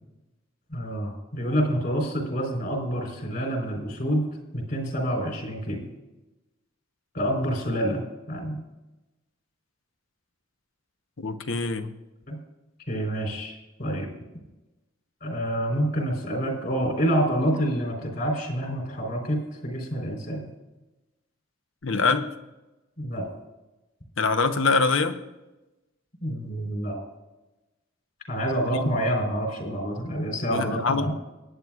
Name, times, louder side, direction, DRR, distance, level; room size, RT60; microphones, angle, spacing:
voice 1, 0.7-4.3 4.5-5.9 7.1-8.6 12.3-12.4 12.9-14.1 15.2-20.5 23.0-23.3 26.2-27.0 28.3-31.1, equal, 50° left, 1 dB, 3.7 m, -27 dB
voice 2, 11.2-11.9 21.8-22.3 24.2-25.2 28.7-28.9 30.5-31.1, left 4 dB, 80° left, 9 dB, 0.8 m, -24 dB
22.0 x 9.4 x 2.4 m, 1.0 s
head